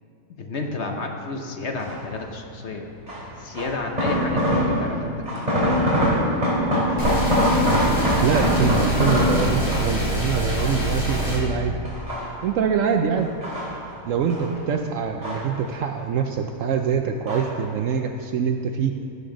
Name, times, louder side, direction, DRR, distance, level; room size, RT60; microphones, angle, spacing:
voice 1, 0.3-2.9 3.4-5.6 6.0-6.3 14.5-14.7, left 3 dB, 50° left, 3 dB, 1.0 m, -31 dB
sound 1, 1.8-2.2 3.1-5.0 5.3-10.0 10.5-11.4 11.8-12.7 13.2-14.5 14.8-16.0 16.2-16.8 17.3-17.6 17.9-18.0, equal, 25° right, 3.1 m, -23 dB
sound 2, 7.0-11.4, equal, 25° left, 3.1 m, -25 dB
voice 2, 8.2-11.8 12.4-13.3 14.1-19.0, right 6 dB, 65° right, 5 dB, 0.8 m, -24 dB
16.0 x 7.8 x 3.8 m, 2.6 s
omnidirectional pair, 1.7 m